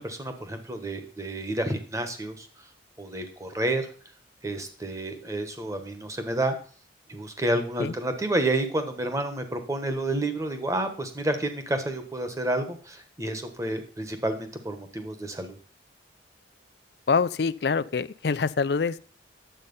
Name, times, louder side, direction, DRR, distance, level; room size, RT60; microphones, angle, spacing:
voice 1, 0.0-2.5 3.0-3.9 4.4-6.5 7.1-15.6, right 1 dB, 15° right, 7 dB, 1.3 m, -30 dB
voice 2, 17.1-19.0, left 5 dB, 60° left, 16 dB, 0.5 m, -25 dB
10.0 x 7.8 x 5.4 m, 0.41 s
head